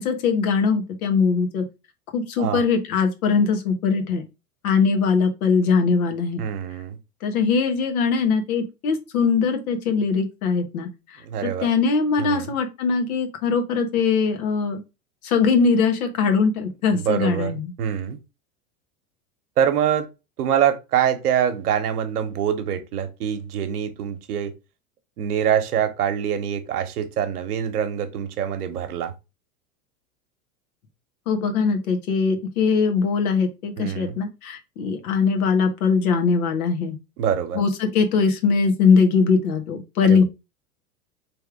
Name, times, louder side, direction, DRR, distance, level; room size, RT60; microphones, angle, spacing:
voice 1, 0.0-1.6 2.1-4.2 4.6-6.4 7.2-10.9 11.4-14.8 15.2-17.7 31.3-36.9 37.5-40.2, left 5 dB, 70° left, 1.3 m, -21 dB
voice 2, 6.4-7.0 11.2-11.7 12.2-12.5 16.9-18.2 19.6-20.1 20.4-24.5 25.2-29.1 33.8-34.2 37.2-37.6 40.0-40.2, right 9 dB, 80° right, 1.0 m, -24 dB
3.5 x 3.3 x 3.4 m
hypercardioid pair, 95°, 45 cm